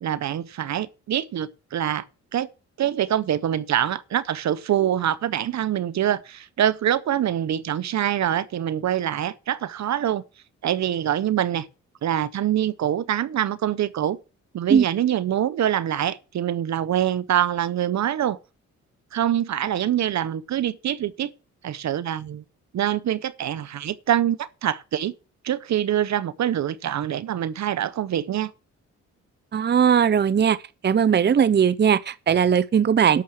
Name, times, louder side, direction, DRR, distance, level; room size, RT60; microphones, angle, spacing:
voice 1, 0.0-2.0 2.3-2.5 2.8-10.2 10.6-11.7 12.0-14.2 14.5-18.4 19.1-21.3 21.6-22.4 22.7-25.1 25.4-28.5, right 11 dB, 65° right, 1.0 m, -25 dB
voice 2, 29.5-30.6 30.8-33.2, right 7 dB, 35° right, 0.7 m, -19 dB
11.5 x 7.2 x 6.6 m
cardioid pair, 65°, 29 cm